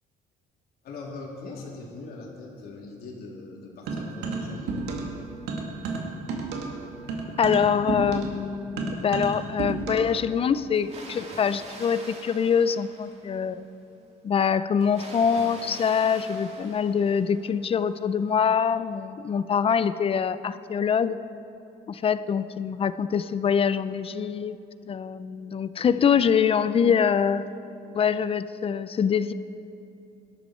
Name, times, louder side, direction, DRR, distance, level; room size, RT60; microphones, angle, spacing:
voice 1, 0.8-4.9 25.7-26.2, left 3 dB, 65° left, -2 dB, 3.4 m, -41 dB
sound 1, 3.9-5.2 5.5-10.2, right 4 dB, 85° right, 2.1 m, -31 dB
voice 2, 7.4-13.6 14.2-21.2 21.9-24.6 24.9-27.4 27.9-29.3, left 7 dB, 35° left, 14 dB, 0.5 m, -24 dB
Water, 10.8-13.6 14.8-17.6, right 2 dB, 40° right, 2.7 m, -44 dB
20.5 x 12.5 x 4.5 m, 2.8 s
cardioid pair, 110°, 17 cm